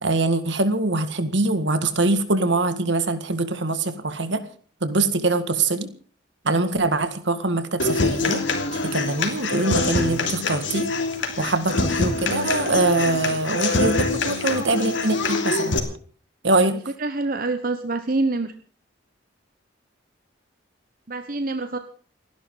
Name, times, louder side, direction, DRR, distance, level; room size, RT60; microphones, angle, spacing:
voice 1, 0.0-4.4 4.8-5.9 6.4-8.4 8.8-10.9 11.4-15.8 16.4-16.8, right 2 dB, 70° right, 10 dB, 1.8 m, -23 dB
Human voice / Acoustic guitar, 7.8-15.8, left 3 dB, 75° left, 3.1 m, -25 dB
voice 2, 16.6-18.5 21.1-21.8, right 2 dB, 45° right, 8 dB, 1.0 m, -26 dB
29.0 x 11.5 x 3.9 m, 0.43 s
head